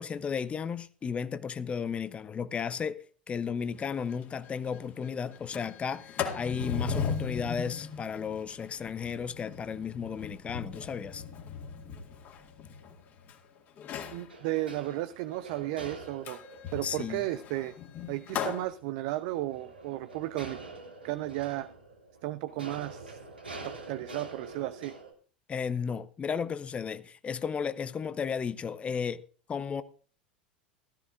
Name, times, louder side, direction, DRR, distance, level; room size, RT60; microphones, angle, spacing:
voice 1, 0.0-11.2 16.8-17.2 25.5-29.2 29.5-29.8, left 6 dB, 20° left, 0.6 m, -34 dB
Sliding door, 3.8-3.9 4.2-4.3 4.7-5.0 5.3-13.3 13.8-14.3 16.3-18.6, left 6 dB, 40° left, 2.1 m, -37 dB
sound 1, 10.7-13.6 14.1-25.1, right 3 dB, 85° right, 2.3 m, -47 dB
voice 2, 14.1-16.4 16.7-17.7 18.1-20.6 21.0-21.7 22.2-23.2 23.6-25.0, right 16 dB, 55° right, 0.5 m, -34 dB
16.0 x 13.0 x 2.5 m
figure-of-eight pair, 80°, 5 cm